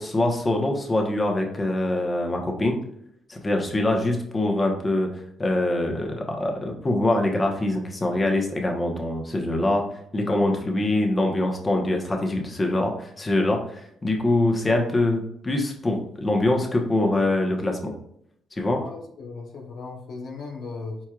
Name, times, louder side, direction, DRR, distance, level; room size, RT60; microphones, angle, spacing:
voice 1, 0.0-2.8 3.3-5.1 5.4-9.8 10.1-17.9 18.6-18.8, left 1 dB, 25° left, 1 dB, 1.0 m, -24 dB
voice 2, 18.6-21.0, left 3 dB, 65° left, 2 dB, 0.9 m, -37 dB
4.5 x 4.3 x 2.4 m, 0.71 s
cardioid pair, 90°, 0 cm